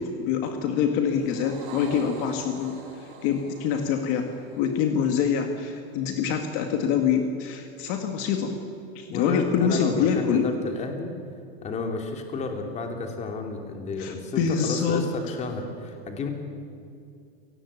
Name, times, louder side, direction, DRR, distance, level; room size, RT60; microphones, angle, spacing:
voice 1, 0.0-4.3 4.6-8.5 8.9-10.4 14.0-15.0, left 7 dB, 45° left, 4 dB, 2.1 m, -25 dB
sound 1, 1.0-5.6, right 4 dB, 60° right, 6.4 m, -44 dB
voice 2, 9.1-11.1 11.6-16.3, left 3 dB, 20° left, 4 dB, 2.9 m, -32 dB
29.0 x 18.5 x 8.7 m, 2.5 s
supercardioid pair, 165°, 31 cm